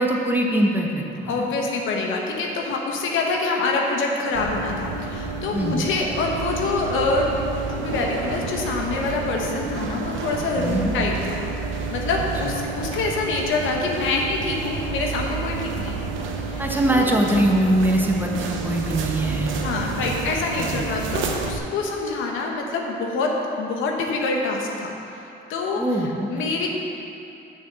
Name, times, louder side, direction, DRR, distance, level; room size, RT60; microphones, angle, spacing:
voice 1, 0.0-1.5 5.5-5.8 10.6-10.9 12.4-12.5 16.6-20.2 20.5-20.8 25.8-26.5, right 1 dB, 10° right, 0 dB, 1.2 m, -23 dB
voice 2, 1.3-7.3 7.7-11.4 11.7-16.1 16.4-16.6 16.9-17.1 19.5-25.8 26.3-26.7, left 3 dB, 85° left, 0 dB, 1.2 m, -26 dB
sound 1, 4.3-21.6, right 4 dB, 80° right, 0.8 m, -30 dB
7.1 x 6.1 x 6.8 m, 2.8 s
cardioid pair, 90°, 20 cm